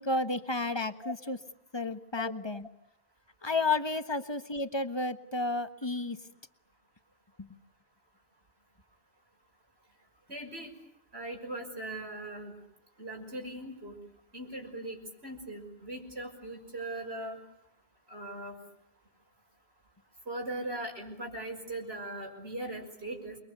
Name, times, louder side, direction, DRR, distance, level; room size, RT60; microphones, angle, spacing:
voice 1, 0.0-1.4 1.7-2.7 3.4-6.2 7.4-7.5, left 3 dB, 25° left, 10 dB, 1.4 m, -32 dB
voice 2, 10.3-10.7 11.1-12.5 13.0-14.0 14.3-17.4 18.1-18.5 20.3-23.4, right 1 dB, 85° right, 2 dB, 6.3 m, -39 dB
29.0 x 22.5 x 8.2 m, 0.72 s
omnidirectional pair, 1.0 m